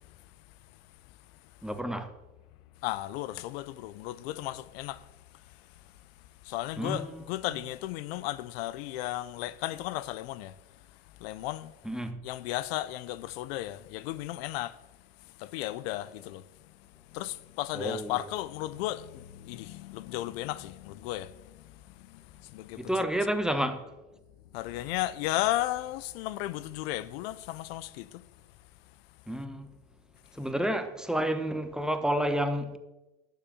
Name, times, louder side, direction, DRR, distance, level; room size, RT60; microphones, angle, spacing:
voice 1, 1.6-2.1 6.8-7.2 11.8-12.2 17.7-18.1 22.8-23.9 29.3-29.7 30.3-32.8, equal, ahead, 1.1 m, -30 dB
voice 2, 2.8-5.0 6.4-10.5 11.2-11.7 12.2-14.8 15.4-16.5 17.1-23.1 24.5-28.2, left 15 dB, 90° left, 0.5 m, -35 dB
10.0 x 7.1 x 7.1 m
supercardioid pair, 95°, 30 cm